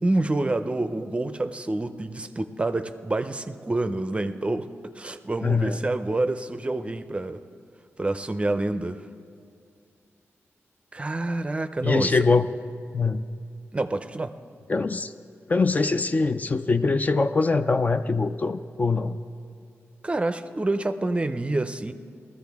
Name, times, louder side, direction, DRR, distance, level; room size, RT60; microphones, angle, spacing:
voice 1, 0.0-4.7 4.9-7.4 8.0-9.0 10.9-12.2 13.7-14.3 20.0-21.9, right 2 dB, 25° right, 10 dB, 0.5 m, -27 dB
voice 2, 5.4-5.8 11.8-12.5 12.9-13.3 14.7-15.1 15.5-19.2, left 4 dB, 30° left, 9 dB, 0.4 m, -23 dB
19.0 x 14.0 x 3.5 m, 2.4 s
wide cardioid pair, 100°, 5 cm